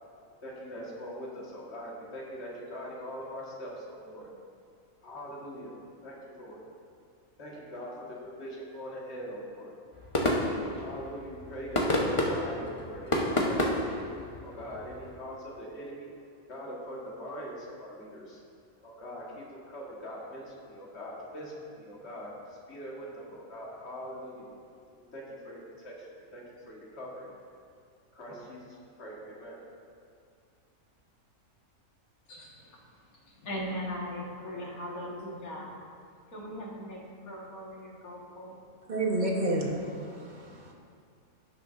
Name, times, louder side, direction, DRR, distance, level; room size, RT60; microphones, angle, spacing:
voice 1, 0.4-4.3 5.0-5.7 6.0-6.6 7.4-9.7 10.8-13.7 14.4-16.1 16.5-18.4 18.8-24.5 25.0-26.1 26.3-27.3 28.1-29.6, equal, 50° left, -5 dB, 1.9 m, -42 dB
sound 1, 9.9-15.2, left 1 dB, 25° left, 0.9 m, -30 dB
voice 2, 32.3-35.7 36.3-38.6, equal, 85° left, -4 dB, 2.1 m, -39 dB
voice 3, 38.9-40.7, right 2 dB, 35° right, -2 dB, 1.2 m, -30 dB
16.5 x 6.5 x 2.6 m, 2.3 s
omnidirectional pair, 1.5 m